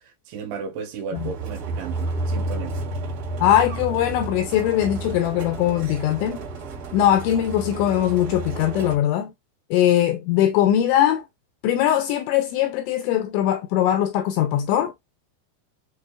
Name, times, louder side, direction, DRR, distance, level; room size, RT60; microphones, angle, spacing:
voice 1, 0.3-2.8, right 6 dB, 75° right, 3.3 m, -34 dB
sound 1, 1.1-8.9, right 2 dB, 50° right, 1.6 m, -31 dB
voice 2, 3.4-6.4 6.9-9.3 9.7-11.2 11.6-14.9, left 11 dB, 85° left, 2.7 m, -21 dB
7.6 x 2.7 x 2.3 m
omnidirectional pair, 5.7 m